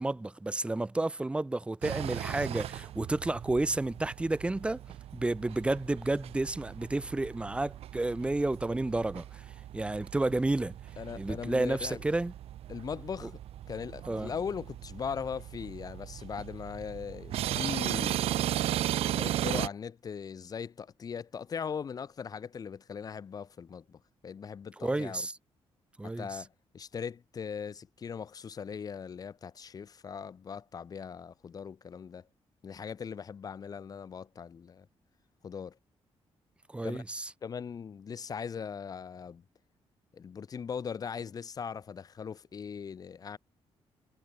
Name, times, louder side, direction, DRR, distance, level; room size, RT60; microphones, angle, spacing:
voice 1, 0.0-4.8 5.1-9.4 9.7-10.8 11.2-12.3 14.1-14.3 24.8-25.3 26.0-26.3 36.7-37.3, right 2 dB, 10° right, 1.7 m, -31 dB
sound 1, 1.8-19.7, right 12 dB, 75° right, 0.7 m, -37 dB
voice 2, 11.0-12.0 12.7-13.4 13.7-18.2 19.1-25.3 26.0-32.3 32.6-34.9 35.4-35.8 36.8-37.0 37.4-39.4 40.1-43.4, left 6 dB, 40° left, 3.7 m, -39 dB
wide cardioid pair, 175°, 10 cm